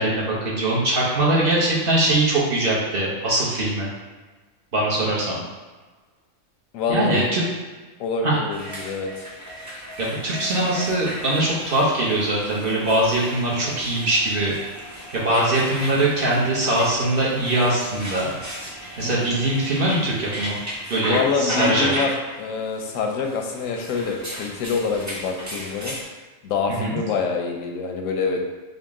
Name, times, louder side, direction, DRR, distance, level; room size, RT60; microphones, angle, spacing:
voice 1, 0.0-3.9 4.7-5.4 6.9-7.4 8.2-8.4 10.0-14.6 15.1-18.3 19.0-20.6 20.9-21.9 26.7-27.0, right 1 dB, 50° right, -6 dB, 0.9 m, -22 dB
voice 2, 6.7-7.3 8.0-9.1 19.0-19.3 21.0-26.0 26.4-28.4, left 5 dB, 85° left, 2 dB, 1.0 m, -26 dB
sound 1, 8.5-26.1, equal, 25° right, 0.4 m, -35 dB
3.8 x 2.1 x 3.5 m, 1.3 s
omnidirectional pair, 1.3 m